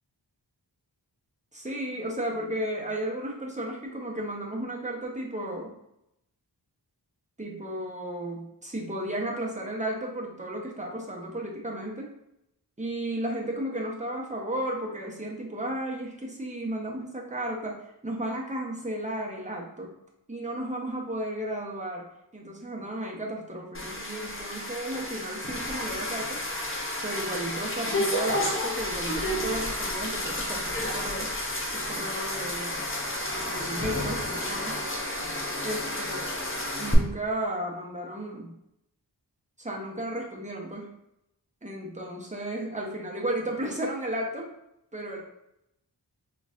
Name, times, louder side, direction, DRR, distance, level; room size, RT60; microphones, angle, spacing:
voice 1, 1.5-5.7 7.4-12.1 12.8-19.9 20.3-22.0 22.3-26.4 26.6-31.3 31.7-32.8 33.5-34.8 35.1-38.5 39.6-40.9 41.6-44.5 44.9-45.2, right 1 dB, 15° right, -1 dB, 0.9 m, -34 dB
sound 1, 23.7-36.9, left 1 dB, 30° left, 0.7 m, -31 dB
3.9 x 3.2 x 2.5 m, 0.82 s
wide cardioid pair, 40°, 43 cm